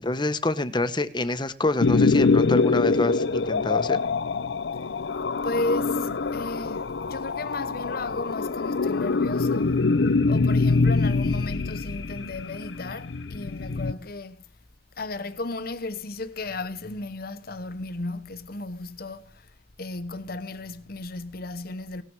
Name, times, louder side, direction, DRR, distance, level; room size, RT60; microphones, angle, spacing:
voice 1, 0.0-4.0, left 2 dB, 25° left, 1.1 m, -26 dB
sound 1, 1.8-13.9, left 4 dB, 85° left, 0.6 m, -24 dB
voice 2, 5.4-9.8 10.3-14.5 15.0-19.5 19.8-22.0, left 2 dB, 55° left, 1.1 m, -34 dB
18.5 x 11.5 x 4.7 m
head